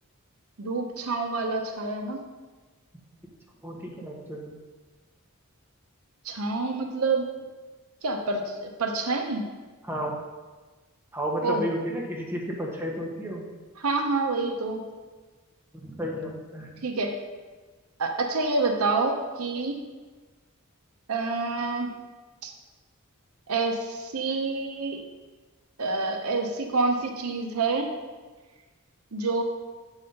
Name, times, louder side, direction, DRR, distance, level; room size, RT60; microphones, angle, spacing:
voice 1, 0.6-2.2 6.2-7.3 8.0-9.4 11.4-11.6 13.8-14.8 16.8-17.1 18.0-19.8 21.1-21.9 22.4-22.5 23.5-25.0 25.8-27.9 29.1-29.4, right 3 dB, 85° right, 4 dB, 0.8 m, -27 dB
voice 2, 3.6-4.6 9.8-10.2 11.1-13.5 15.8-16.7, equal, 10° right, -2 dB, 1.1 m, -32 dB
7.8 x 4.1 x 5.3 m, 1.3 s
head